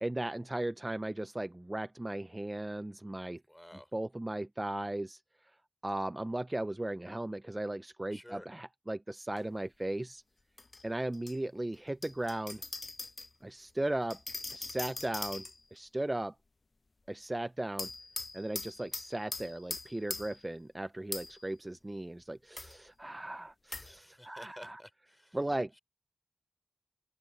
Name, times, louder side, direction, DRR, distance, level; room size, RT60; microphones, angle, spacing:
voice 1, 0.0-3.4 3.9-5.2 5.8-10.2 10.8-12.6 13.4-14.2 14.5-15.5 15.7-16.3 17.1-17.9 18.3-24.8 25.3-25.7, right 1 dB, 25° right, 0.5 m, -37 dB
voice 2, 3.5-3.9 8.1-8.5 23.8-25.4 25.7-25.8, equal, 10° left, 4.1 m, -52 dB
sound 1, 9.4-9.5 10.6-11.4 12.0-13.3 14.1-15.8 17.8-20.5 21.1-21.5 22.6-22.8 23.7-23.9, left 3 dB, 50° left, 0.6 m, -41 dB
open air
wide cardioid pair, 70°, 0 cm